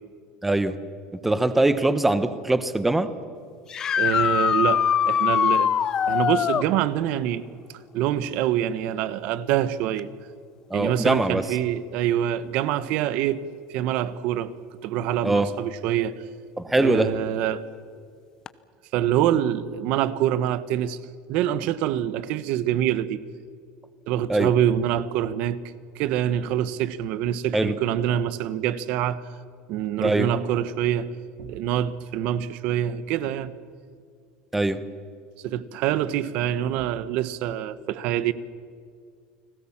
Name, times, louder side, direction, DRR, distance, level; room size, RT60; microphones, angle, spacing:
voice 1, 0.4-0.8 1.2-3.1 10.7-11.4 15.2-15.5 16.6-17.1 24.3-24.5 27.5-27.7 30.0-30.3 34.5-34.8, right 2 dB, 5° right, 1.1 m, -22 dB
sound 1, 3.7-6.7 10.0-10.1 12.1-12.2 18.5-18.6, left 8 dB, 25° left, 0.8 m, -22 dB
voice 2, 4.0-5.7 6.1-7.5 7.9-10.1 10.7-14.5 14.8-16.2 16.8-17.6 18.9-21.0 21.3-23.2 24.1-25.6 25.9-29.2 29.7-31.1 31.4-33.5 35.4-38.3, right 11 dB, 55° right, 1.2 m, -25 dB
30.0 x 20.0 x 7.4 m
cardioid pair, 165°, 2 cm